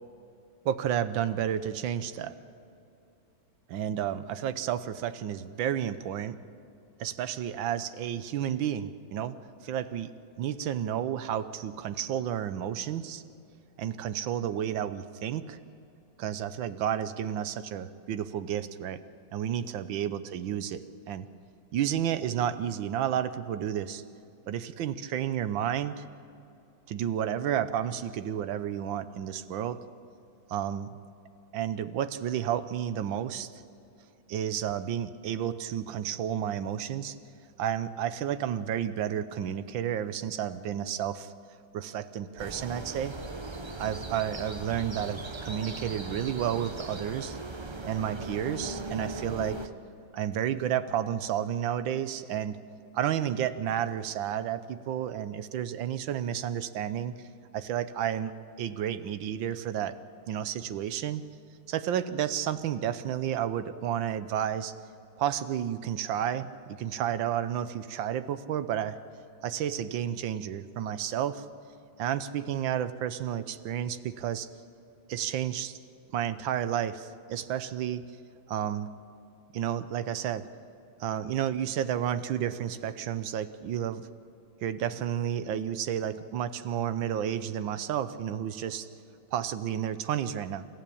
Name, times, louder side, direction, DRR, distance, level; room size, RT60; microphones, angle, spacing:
voice 1, 0.6-2.3 3.7-6.4 7.0-9.3 9.6-13.2 13.8-15.6 16.2-19.0 19.3-21.3 21.7-24.0 24.5-26.0 26.9-29.8 30.5-30.9 31.5-33.5 34.3-37.1 37.6-41.3 41.7-43.2 43.8-47.4 47.8-49.6 50.1-52.6 52.9-57.1 57.5-58.3 58.6-60.0 60.3-61.2 61.7-64.7 65.2-69.0 69.4-71.4 72.0-74.5 75.1-75.8 76.1-78.0 78.5-78.9 79.5-80.5 81.0-84.1 84.6-88.9 89.3-90.7, right 10 dB, 80° right, 12 dB, 1.5 m, -31 dB
sound 1, 42.4-49.7, right 2 dB, 35° right, 0.4 m, -38 dB
28.0 x 15.0 x 8.6 m, 2.6 s
omnidirectional pair, 2.1 m